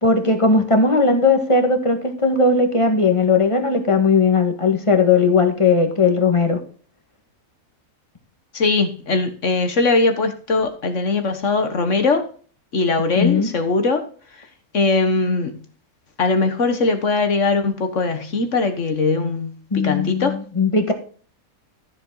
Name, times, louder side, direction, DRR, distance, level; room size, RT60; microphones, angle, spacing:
voice 1, 0.0-6.6 13.2-13.5 19.7-20.9, left 4 dB, 20° left, 1.7 m, -17 dB
voice 2, 8.5-12.2 12.7-14.0 14.3-14.4 14.7-15.6 16.2-20.4, left 3 dB, 55° left, 1.6 m, -20 dB
13.5 x 7.1 x 3.9 m
omnidirectional pair, 1.5 m